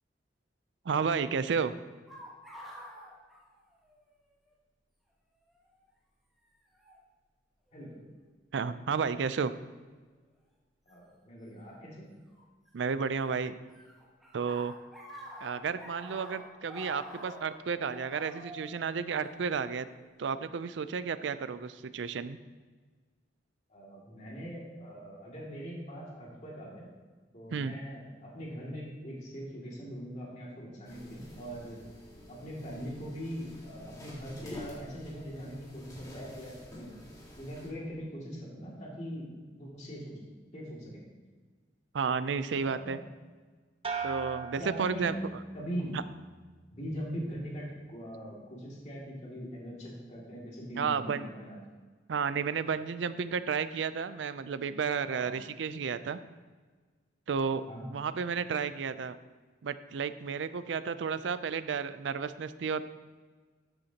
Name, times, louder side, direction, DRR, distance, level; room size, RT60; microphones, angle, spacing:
voice 1, 0.9-1.7 8.5-9.5 12.7-13.5 14.3-14.7 15.4-19.9 20.2-22.4 27.5-27.8 41.9-43.0 44.0-45.1 45.9-46.0 50.8-51.3 52.1-56.2 57.3-59.2 59.6-62.8, right 6 dB, 75° right, 13 dB, 0.4 m, -32 dB
sound 1, 2.1-4.2 4.4-4.5 5.5-5.8 6.8-7.0 7.8-8.2 10.9-11.0 12.3-13.2 13.5-20.0, equal, ahead, 1.4 m, -48 dB
voice 2, 10.9-12.1 23.7-26.9 27.3-31.8 32.3-36.9 37.3-39.3 39.5-40.1 40.5-41.0 42.6-43.0 44.6-45.1 45.5-46.0 46.7-51.6 55.1-55.4 57.7-57.9, equal, 40° left, -4 dB, 2.4 m, -41 dB
sound 2, 30.8-37.7, left 1 dB, 20° left, 1.8 m, -49 dB
sound 3, 43.8-45.6 46.0-46.6, right 5 dB, 30° right, 0.9 m, -39 dB
13.0 x 7.9 x 2.9 m, 1.4 s
head